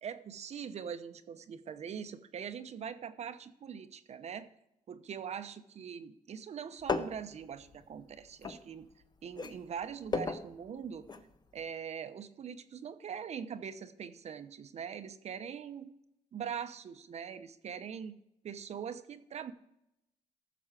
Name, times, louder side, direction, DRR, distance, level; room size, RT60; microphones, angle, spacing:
voice 1, 0.0-4.5 4.9-8.9 9.2-11.0 11.5-15.9 16.3-18.2 18.4-19.5, right 7 dB, 55° right, 11 dB, 0.8 m, -42 dB
sound 1, 6.8-9.0 9.3-11.3 11.6-11.7, left 4 dB, 35° left, 0.9 m, -36 dB
14.0 x 7.0 x 4.9 m, 0.82 s
cardioid pair, 110°, 13 cm